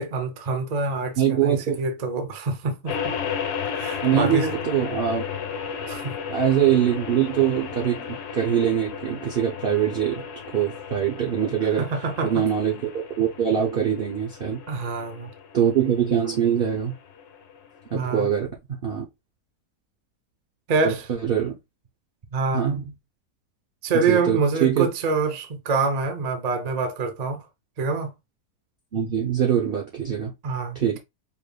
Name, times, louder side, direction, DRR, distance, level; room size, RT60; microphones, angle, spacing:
voice 1, 0.0-3.1 3.7-4.7 5.8-6.1 11.7-12.5 14.7-15.3 17.9-18.3 20.7-21.1 22.3-22.6 23.8-27.4 27.8-28.1 30.4-31.0, right 4 dB, 65° right, 0.4 m, -26 dB
voice 2, 1.2-1.8 4.0-5.2 6.3-10.2 10.5-11.9 12.2-12.9 13.2-14.6 15.5-16.9 17.9-19.1 20.8-21.6 22.5-22.9 23.9-24.9 28.9-30.3 30.7-31.0, right 9 dB, 45° right, 0.8 m, -23 dB
sound 1, 2.9-18.2, left 7 dB, 70° left, 1.3 m, -34 dB
5.1 x 3.4 x 2.3 m
omnidirectional pair, 1.8 m